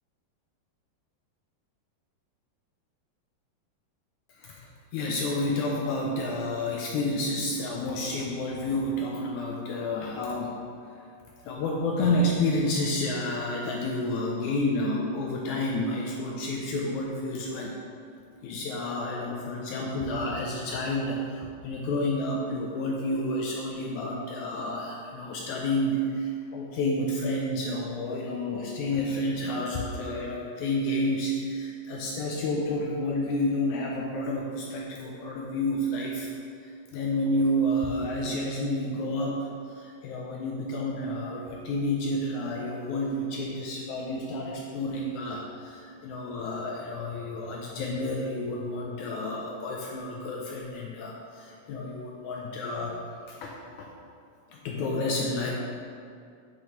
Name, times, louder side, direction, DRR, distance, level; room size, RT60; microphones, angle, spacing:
voice 1, 4.9-10.5 11.4-17.8 18.4-36.3 36.9-53.0 53.3-53.9 54.5-55.5, left 1 dB, 80° left, -1 dB, 1.8 m, -30 dB
8.3 x 6.2 x 3.0 m, 2.3 s
omnidirectional pair, 3.9 m